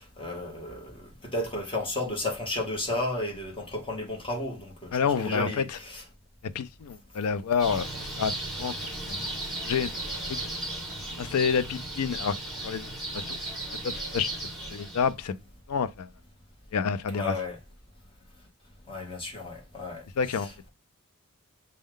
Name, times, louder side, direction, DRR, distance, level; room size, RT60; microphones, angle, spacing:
voice 1, 0.0-6.0 17.1-17.6 18.9-20.0 20.3-20.7, left 1 dB, 25° left, 1.1 m, -33 dB
voice 2, 4.9-5.5 6.5-7.9 8.2-8.3 8.6-9.2 9.6-9.9 10.3-10.4 11.2-12.3 12.6-13.4 13.8-14.3 14.7-15.4 15.7-16.1 16.7-17.3 20.2-20.7, left 6 dB, 90° left, 0.4 m, -28 dB
sound 1, 7.6-15.1, right 1 dB, ahead, 1.3 m, -35 dB
6.2 x 2.2 x 3.6 m
head